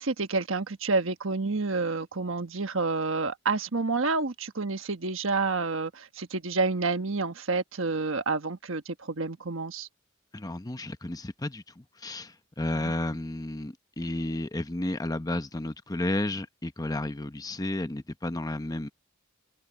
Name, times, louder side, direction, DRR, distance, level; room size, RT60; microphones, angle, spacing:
voice 1, 0.0-9.9, right 3 dB, 70° right, 1.3 m, -29 dB
voice 2, 10.3-18.9, left 1 dB, 20° left, 0.8 m, -32 dB
head